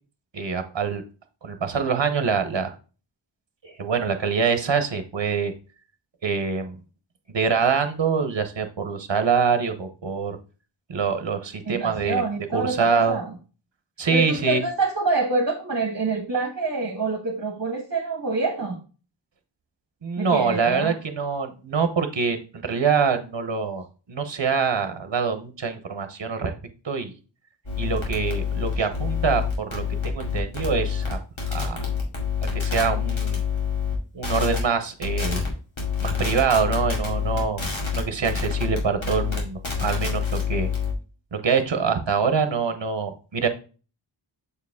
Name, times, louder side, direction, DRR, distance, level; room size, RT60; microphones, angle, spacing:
voice 1, 0.3-1.0 1.4-2.7 3.6-5.5 6.2-6.8 7.3-10.4 10.9-12.2 12.5-13.2 14.0-14.6 20.0-26.5 26.8-27.1 27.8-31.2 31.5-31.8 32.5-33.4 34.1-35.5 36.0-37.6 37.9-40.7 41.3-43.5, right 5 dB, 65° right, 8 dB, 0.9 m, -25 dB
voice 2, 11.6-13.3 14.1-18.8 20.2-21.0, right 3 dB, 45° right, 2 dB, 1.3 m, -26 dB
sound 1, 27.7-33.9 34.2-34.6 35.0-35.5 35.8-40.9, left 7 dB, 80° left, 2.3 m, -27 dB
6.9 x 4.7 x 3.5 m, 0.35 s
wide cardioid pair, 45°, 46 cm